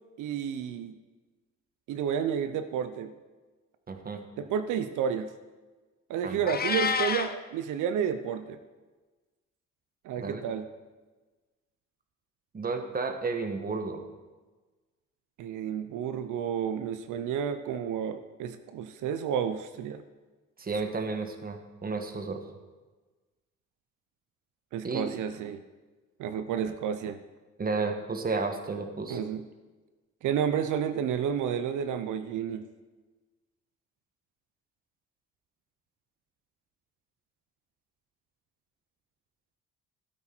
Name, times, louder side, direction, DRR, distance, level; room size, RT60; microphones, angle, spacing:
voice 1, 0.2-1.0 1.9-3.1 4.4-5.3 6.1-8.6 10.0-10.7 15.4-20.0 24.7-25.6 26.2-27.2 29.1-29.5 30.2-32.7, right 8 dB, 85° right, 10 dB, 0.7 m, -31 dB
voice 2, 3.9-4.2 6.2-6.4 10.2-10.4 12.5-14.0 20.6-22.4 24.8-25.0 27.6-29.2, right 4 dB, 30° right, 6 dB, 1.4 m, -32 dB
Meow, 6.5-7.3, left 6 dB, 30° left, 0.8 m, -28 dB
13.0 x 8.7 x 4.4 m, 1.3 s
cardioid pair, 90°, 30 cm